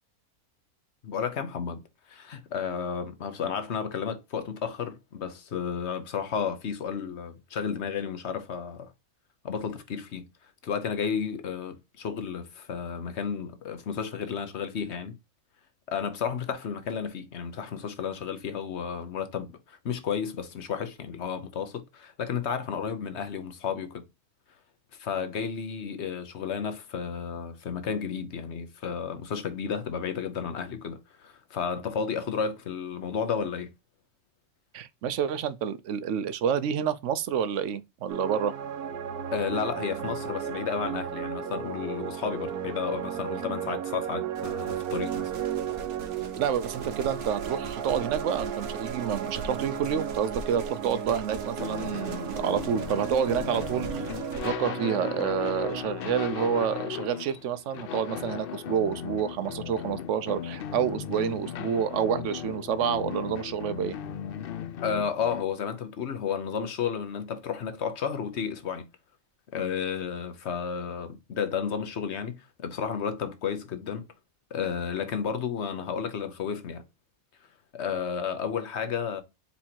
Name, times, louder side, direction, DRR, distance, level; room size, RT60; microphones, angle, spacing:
voice 1, 1.0-1.8 2.1-8.9 9.4-15.2 15.9-24.0 24.9-33.7 39.3-45.3 64.8-68.9 69.5-74.0 74.5-76.8 77.7-79.2, left 7 dB, 50° left, 1.1 m, -32 dB
voice 2, 34.7-38.6 46.4-54.0 54.4-64.0, right 8 dB, 65° right, 0.8 m, -28 dB
sound 1, 38.1-55.8, right 8 dB, 90° right, 1.2 m, -35 dB
sound 2, 44.4-54.5, right 3 dB, 50° right, 1.1 m, -42 dB
sound 3, 51.6-65.4, left 9 dB, 75° left, 0.5 m, -37 dB
4.5 x 4.2 x 2.8 m
omnidirectional pair, 1.6 m